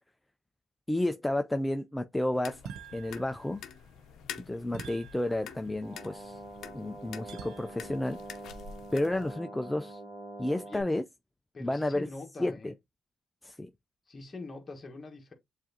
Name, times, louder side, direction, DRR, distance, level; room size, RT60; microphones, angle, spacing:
voice 1, 0.9-2.6 2.9-3.6 4.5-6.4 6.7-8.2 8.9-10.0 10.4-11.0 11.6-12.1 12.4-12.7 13.4-13.7, left 1 dB, 10° left, 0.3 m, -31 dB
sound 1, 2.3-9.3, left 8 dB, 75° left, 0.6 m, -47 dB
sound 2, 2.6-3.9 4.7-5.9 7.3-8.1, right 7 dB, 80° right, 0.5 m, -48 dB
sound 3, 5.8-10.8, right 2 dB, 30° right, 1.1 m, -45 dB
voice 2, 11.5-12.7 14.1-15.3, left 3 dB, 30° left, 1.2 m, -44 dB
7.3 x 2.5 x 2.7 m
cardioid pair, 90°, 0 cm